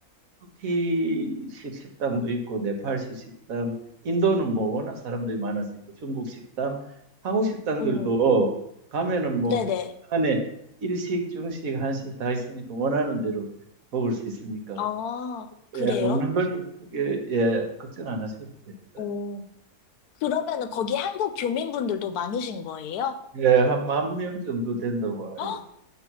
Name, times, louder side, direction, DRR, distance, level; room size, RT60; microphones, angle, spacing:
voice 1, 0.6-1.7 2.0-3.0 3.5-3.7 4.0-5.6 6.0-6.8 7.2-8.5 8.9-9.6 10.1-10.4 10.8-13.5 13.9-14.8 15.7-16.6 16.9-19.0 23.4-25.6, right 3 dB, 65° right, 3 dB, 1.4 m, -26 dB
voice 2, 7.8-8.2 9.5-9.9 14.8-16.2 19.0-19.4 20.2-23.2 25.4-25.6, left 7 dB, 75° left, 9 dB, 1.1 m, -29 dB
8.4 x 3.0 x 6.2 m, 0.73 s
omnidirectional pair, 1.7 m